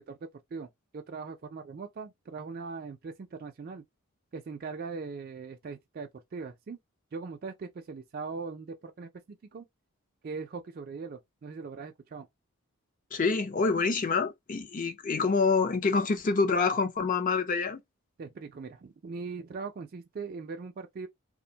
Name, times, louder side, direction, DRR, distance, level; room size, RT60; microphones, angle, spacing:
voice 1, 0.5-3.8 4.3-6.8 7.1-9.7 10.2-12.3 18.2-21.1, right 4 dB, 40° right, 0.3 m, -40 dB
voice 2, 13.1-17.8, left 4 dB, 35° left, 0.4 m, -26 dB
2.5 x 2.1 x 2.6 m
head